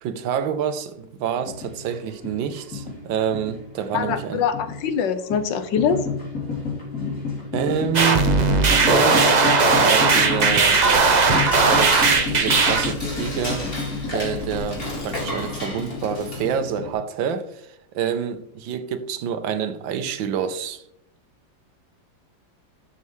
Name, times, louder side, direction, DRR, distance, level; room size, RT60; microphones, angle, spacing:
voice 1, 0.0-4.4 7.5-8.3 8.7-9.4 9.8-10.9 11.6-13.7 14.1-20.8, right 8 dB, 85° right, 1.5 m, -27 dB
sound 1, 1.5-2.0 2.2-5.0 5.3-10.7 11.3-16.9, left 4 dB, 45° left, 3.7 m, -31 dB
voice 2, 3.9-6.0, left 7 dB, 75° left, 1.4 m, -23 dB
sound 2, 7.9-12.9, right 4 dB, 60° right, 0.4 m, -18 dB
Dishes pots and pans / Cutlery silverware, 9.9-16.7, left 1 dB, 30° left, 2.5 m, -33 dB
12.5 x 6.8 x 3.2 m
omnidirectional pair, 2.0 m